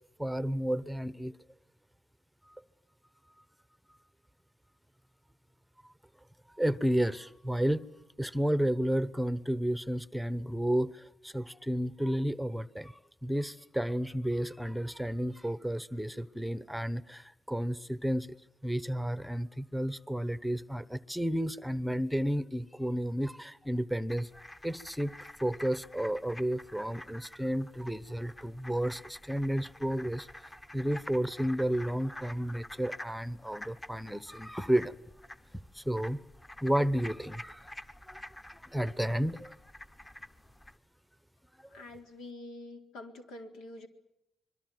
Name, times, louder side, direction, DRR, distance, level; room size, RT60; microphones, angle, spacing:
voice 1, 0.2-1.3 2.5-2.6 6.6-7.8 8.2-18.4 18.6-24.3 24.6-25.1 25.4-30.3 30.7-34.9 35.7-36.2 36.6-37.7 38.1-38.2 38.7-39.5 41.6-41.7, equal, ahead, 1.0 m, -32 dB
sound 1, 24.1-40.8, left 1 dB, 20° left, 1.3 m, -49 dB
voice 2, 41.7-43.9, left 2 dB, 85° left, 4.1 m, -46 dB
25.5 x 22.5 x 9.4 m
cardioid pair, 90°, 0 cm